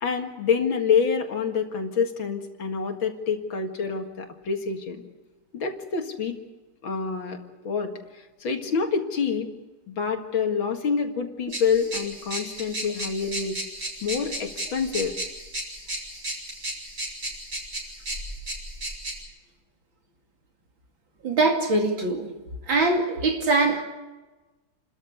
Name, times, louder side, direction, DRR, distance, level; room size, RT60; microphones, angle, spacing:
voice 1, 0.0-5.0 5.5-6.4 6.8-7.4 7.6-7.9 8.4-9.5 9.9-13.6 14.0-15.1, left 6 dB, 70° left, 5 dB, 2.6 m, -27 dB
sound 1, 11.5-19.2, right 1 dB, 45° right, 6.9 m, -34 dB
voice 2, 21.2-22.3 22.7-23.8, right 3 dB, 65° right, 3 dB, 3.3 m, -22 dB
29.0 x 13.5 x 8.4 m, 1.2 s
omnidirectional pair, 2.3 m